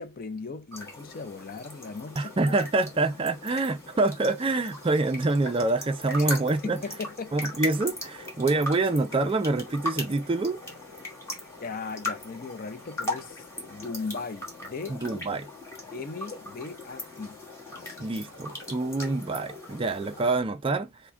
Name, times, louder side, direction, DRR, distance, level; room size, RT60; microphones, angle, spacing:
voice 1, 0.0-2.6 6.2-6.3 6.6-7.4 11.6-15.2 15.9-17.4 17.7-18.1, left 4 dB, 40° left, 0.5 m, -38 dB
sound 1, 0.7-20.3, left 1 dB, 15° left, 1.4 m, -39 dB
voice 2, 2.2-6.8 7.3-10.6 14.9-15.5 18.0-21.1, right 2 dB, 25° right, 0.3 m, -26 dB
5.8 x 2.1 x 3.6 m
head